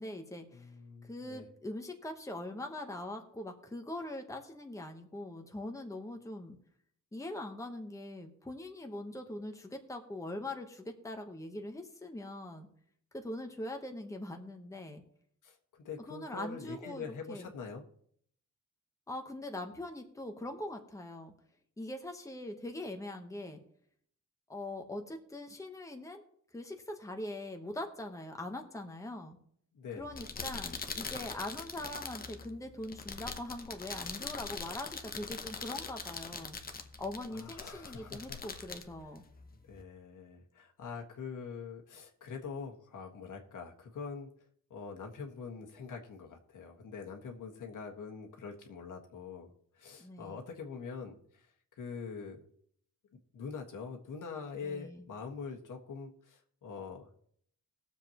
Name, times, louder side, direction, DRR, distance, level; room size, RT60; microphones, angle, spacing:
voice 1, 0.0-0.7 1.0-6.6 7.1-12.7 13.1-15.0 16.1-17.5 19.1-21.3 21.8-23.6 24.5-26.2 26.5-29.4 30.0-36.6 37.0-39.2 50.0-50.4 54.6-55.0, left 1 dB, 10° left, 4 dB, 1.1 m, -42 dB
voice 2, 0.5-1.5 15.4-17.8 29.7-30.0 37.3-38.4 39.7-44.3 44.7-51.5 51.8-52.4 53.1-57.3, left 5 dB, 85° left, 2 dB, 1.7 m, -44 dB
sound 1, 30.0-39.8, left 4 dB, 30° left, 0.8 m, -43 dB
20.0 x 7.3 x 3.0 m, 0.64 s
wide cardioid pair, 145°, 30 cm